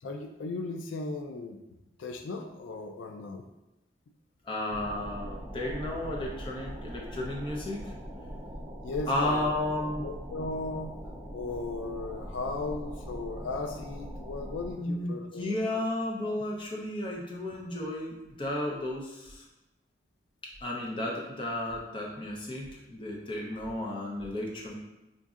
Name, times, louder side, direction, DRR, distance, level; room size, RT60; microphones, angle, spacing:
voice 1, 0.0-1.6 2.0-3.4 8.8-9.5 10.0-11.0 11.3-15.8, left 3 dB, 85° left, 4 dB, 0.4 m, -36 dB
voice 2, 4.5-7.9 9.1-10.1 14.8-19.4 20.6-24.7, left 1 dB, 25° left, -2 dB, 0.6 m, -33 dB
sound 1, 4.7-14.7, equal, 15° right, 0.5 m, -41 dB
5.0 x 2.6 x 2.4 m, 0.97 s
head